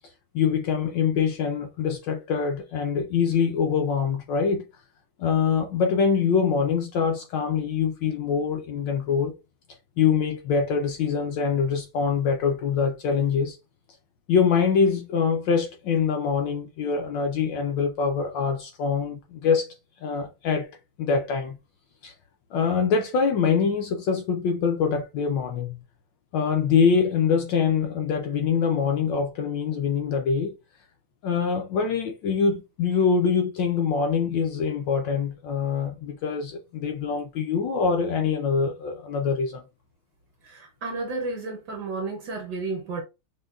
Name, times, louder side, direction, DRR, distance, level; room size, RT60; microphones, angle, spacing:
voice 1, 0.3-4.6 5.2-9.3 10.0-13.6 14.3-19.7 20.0-20.7 21.0-21.6 22.0-22.1 22.5-25.8 26.3-30.5 31.2-39.6, left 6 dB, 70° left, 1.1 m, -24 dB
voice 2, 40.4-43.0, right 3 dB, 65° right, 1.1 m, -32 dB
5.2 x 2.2 x 2.3 m
omnidirectional pair, 2.4 m